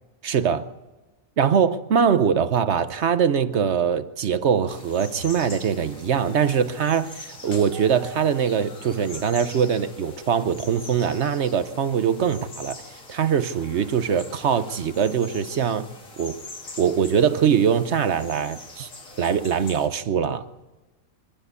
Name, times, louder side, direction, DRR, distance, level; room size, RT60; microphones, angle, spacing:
voice 1, 0.2-0.6 1.4-12.8 13.1-15.9 16.2-16.4 16.8-18.9 19.2-20.4, right 7 dB, 60° right, 1.0 m, -22 dB
sound 1, 4.7-19.9, left 3 dB, 70° left, 2.9 m, -43 dB
25.5 x 12.5 x 8.3 m
omnidirectional pair, 1.4 m